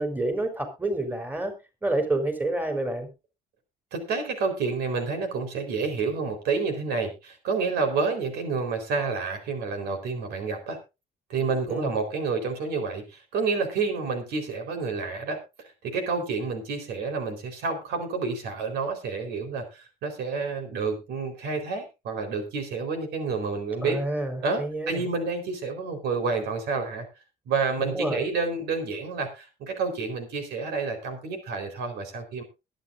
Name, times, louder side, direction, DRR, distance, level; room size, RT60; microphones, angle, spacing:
voice 1, 0.0-1.5 1.8-3.1 11.7-11.9 23.8-25.1 27.8-28.3, right 2 dB, 10° right, 5 dB, 3.8 m, -28 dB
voice 2, 3.9-10.8 11.3-15.4 15.8-24.0 24.4-27.1 27.5-32.4, right 4 dB, 75° right, 5 dB, 4.2 m, -29 dB
22.0 x 9.2 x 2.6 m, 0.27 s
cardioid pair, 110°, 17 cm